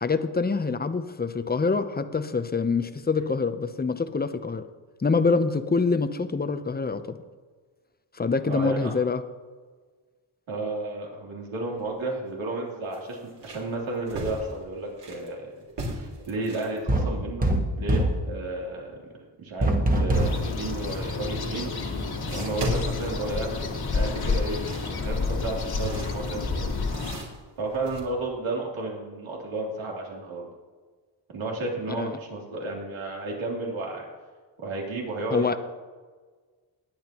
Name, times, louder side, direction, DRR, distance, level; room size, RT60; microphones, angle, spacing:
voice 1, 0.0-4.7 5.0-7.2 8.1-9.2 32.0-32.2 35.3-35.6, left 4 dB, 20° left, 10 dB, 0.8 m, -25 dB
voice 2, 8.5-8.9 10.5-15.5 15.9-17.5 17.8-19.0 19.4-21.7 22.3-24.6 25.0-26.8 27.6-30.5 31.3-34.1 34.6-35.6, right 2 dB, 80° right, -2 dB, 3.4 m, -32 dB
sound 1, 11.7-11.9 12.3-12.4 12.9-15.3 15.7-16.8 21.0-21.1 22.3-23.8 24.3-28.0, right 1 dB, 60° right, 3.3 m, -36 dB
sound 2, 16.9-18.2 19.6-20.5, right 1 dB, 20° right, 1.6 m, -23 dB
sound 3, 20.1-27.2, left 4 dB, 50° left, 1.9 m, -30 dB
20.0 x 8.8 x 3.0 m, 1.5 s
cardioid pair, 80°, 47 cm